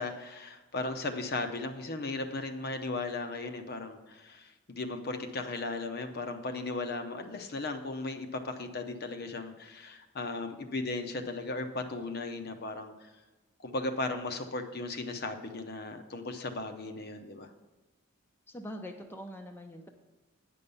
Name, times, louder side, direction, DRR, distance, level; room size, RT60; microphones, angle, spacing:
voice 1, 0.0-13.1 13.6-17.5, left 2 dB, 50° left, 6 dB, 0.7 m, -36 dB
voice 2, 18.5-19.9, equal, 10° left, 3 dB, 0.6 m, -43 dB
9.2 x 5.4 x 6.9 m, 1.1 s
head